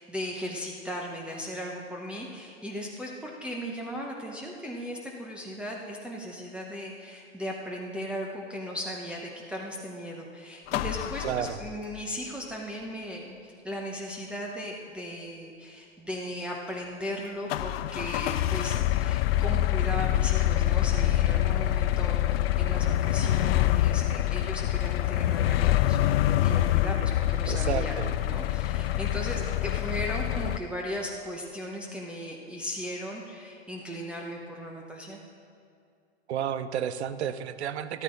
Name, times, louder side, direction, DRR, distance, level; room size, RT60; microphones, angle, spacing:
voice 1, 0.0-35.2, equal, 5° right, -3 dB, 0.9 m, -37 dB
sound 1, 10.7-12.0 17.5-30.6, left 13 dB, 65° left, 0.5 m, -26 dB
voice 2, 11.2-11.6 27.5-28.1 36.3-38.0, right 9 dB, 80° right, 13 dB, 0.8 m, -31 dB
13.5 x 12.5 x 3.9 m, 2.3 s
hypercardioid pair, 130°, 33 cm